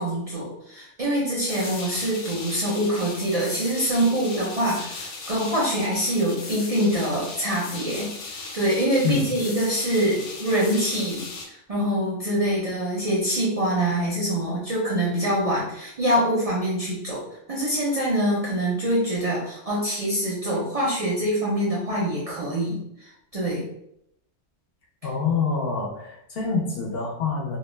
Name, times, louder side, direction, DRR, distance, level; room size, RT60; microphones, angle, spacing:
voice 1, 0.0-17.2 17.5-23.6, right 1 dB, 45° right, -6 dB, 0.5 m, -25 dB
sound 1, 1.5-11.5, left 3 dB, 85° left, 0.9 m, -37 dB
voice 2, 25.0-27.6, left 5 dB, 60° left, -2 dB, 0.8 m, -26 dB
2.3 x 2.1 x 3.1 m, 0.77 s
omnidirectional pair, 1.2 m